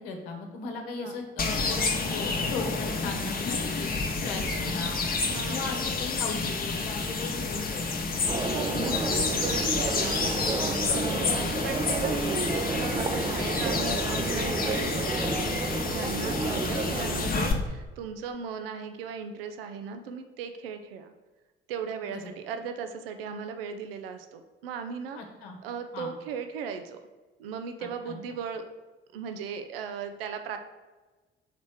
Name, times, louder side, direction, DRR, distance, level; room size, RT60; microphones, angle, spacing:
voice 1, 0.0-3.9 4.2-5.0 5.5-8.4 11.2-11.4 16.6-16.8 22.0-22.3 25.1-25.6 25.9-26.1 27.8-28.2, left 4 dB, 70° left, 3 dB, 1.0 m, -37 dB
sound 1, 1.4-17.5, left 4 dB, 30° left, 0.9 m, -29 dB
voice 2, 5.3-5.6 8.5-11.3 11.6-21.1 21.7-25.2 25.6-27.0 27.4-28.6 29.1-30.6, right 6 dB, 75° right, 7 dB, 0.5 m, -37 dB
sound 2, 8.3-17.2, right 3 dB, 15° right, 0.5 m, -31 dB
5.9 x 4.2 x 4.6 m, 1.2 s
figure-of-eight pair, 45°, 29 cm